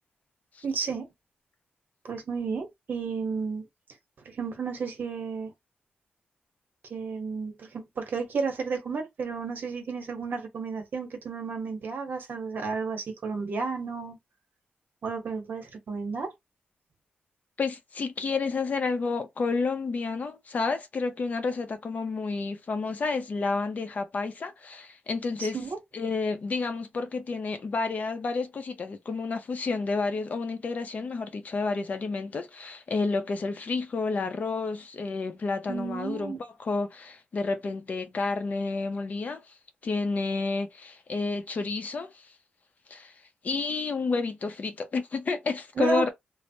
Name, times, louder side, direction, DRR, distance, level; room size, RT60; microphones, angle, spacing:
voice 1, 0.6-1.1 2.0-3.6 4.2-5.5 6.9-14.2 15.0-16.3 25.4-25.8 35.7-36.4 45.8-46.0, right 5 dB, 60° right, 0.9 m, -32 dB
voice 2, 17.6-25.6 25.9-36.3 36.6-39.4 39.8-42.3 42.9-43.1 43.4-46.1, left 4 dB, 45° left, 0.6 m, -30 dB
3.2 x 2.0 x 2.7 m
wide cardioid pair, 125°, 4 cm